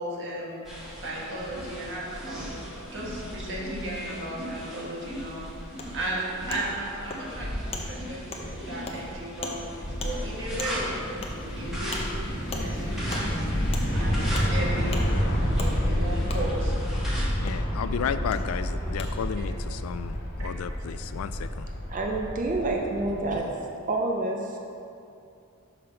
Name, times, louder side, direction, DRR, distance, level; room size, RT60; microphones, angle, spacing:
voice 1, 0.0-5.4 5.9-11.0 11.4-12.0 12.4-13.5 13.9-16.7 19.4-19.5, right 1 dB, 60° right, -4 dB, 1.4 m, -35 dB
sound 1, 0.6-17.2, equal, ahead, 1.4 m, -37 dB
Wood, 5.8-5.9 6.5-6.6 7.1-7.2 7.7-7.8 8.3-8.4 8.8-9.0 9.4-9.6 10.0-10.1 10.6-10.7 11.2-11.3 11.9-12.0 12.5-12.6 13.1-13.2 13.7-13.8 14.3-14.5 14.9-15.0 15.6-15.7 16.3-16.4 17.5-17.6 18.3-18.4 19.0-19.1, left 3 dB, 30° left, 0.7 m, -36 dB
sound 2, 8.1-23.4, equal, 55° left, 1.4 m, -29 dB
voice 2, 17.4-21.7, left 7 dB, 80° left, 12 dB, 0.3 m, -33 dB
voice 3, 21.9-23.5 23.9-24.6, right 2 dB, 40° right, 1 dB, 0.6 m, -28 dB
5.9 x 5.1 x 5.6 m, 2.6 s
head